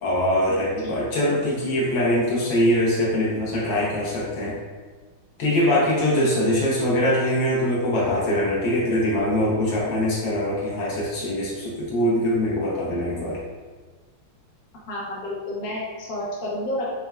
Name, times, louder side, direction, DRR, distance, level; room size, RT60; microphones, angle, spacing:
voice 1, 0.0-4.5 5.4-13.4, left 1 dB, 70° left, -5 dB, 1.5 m, -23 dB
voice 2, 0.8-1.3 14.9-16.9, left 1 dB, 55° left, -5 dB, 1.2 m, -31 dB
4.3 x 3.5 x 2.3 m, 1.4 s
omnidirectional pair, 2.3 m